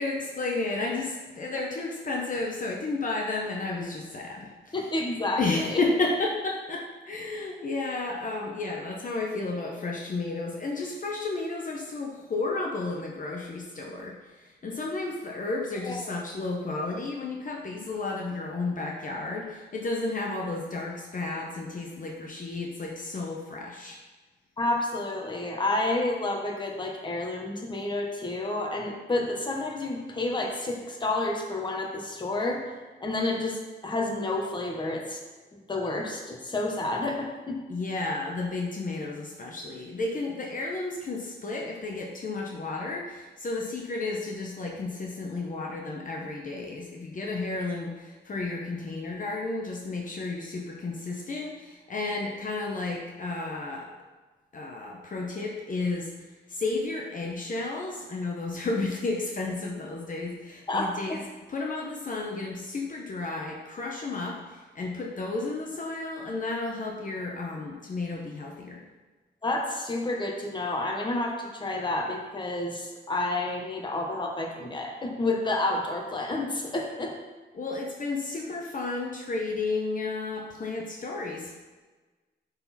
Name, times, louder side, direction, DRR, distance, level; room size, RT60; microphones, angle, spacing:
voice 1, 0.0-4.8 5.4-24.0 37.7-53.9 54.5-56.1 56.5-61.2 61.5-68.8 77.5-81.5, left 3 dB, 45° left, -1 dB, 1.0 m, -32 dB
voice 2, 4.7-5.8 15.8-16.0 24.6-32.6 33.0-35.2 35.7-37.6 60.7-61.2 69.4-77.1, left 2 dB, 25° left, 0 dB, 1.1 m, -30 dB
10.5 x 4.1 x 4.2 m, 1.3 s
wide cardioid pair, 135°, 19 cm